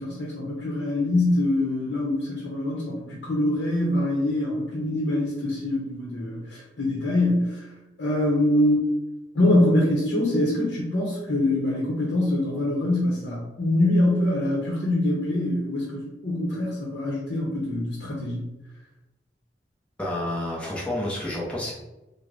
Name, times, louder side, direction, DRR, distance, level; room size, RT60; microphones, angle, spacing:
voice 1, 0.0-7.7 8.0-8.8 9.3-18.5, left 1 dB, 70° left, -4 dB, 0.8 m, -24 dB
voice 2, 20.0-21.7, left 1 dB, 5° left, -6 dB, 0.7 m, -29 dB
3.7 x 2.1 x 3.3 m, 1.0 s
head